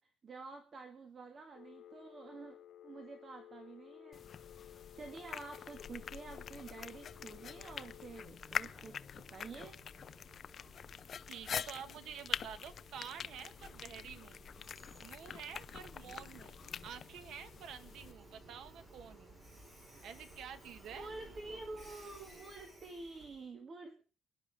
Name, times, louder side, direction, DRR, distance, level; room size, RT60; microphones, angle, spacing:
voice 1, 0.2-2.6 2.8-4.2 4.5-9.8 20.9-24.1, right 3 dB, 35° right, 6 dB, 2.1 m, -49 dB
Telephone, 1.5-8.3, left 11 dB, 65° left, 1.0 m, -56 dB
sound 1, 4.1-18.1, left 7 dB, 45° left, 0.6 m, -45 dB
Train, 4.7-23.5, right 1 dB, 20° right, 4.9 m, -59 dB
voice 2, 11.3-14.4 15.0-19.4 20.0-21.1 21.5-21.6, right 8 dB, 75° right, 11 dB, 1.8 m, -49 dB
23.5 x 11.5 x 3.6 m, 0.38 s
cardioid pair, 135°, 0 cm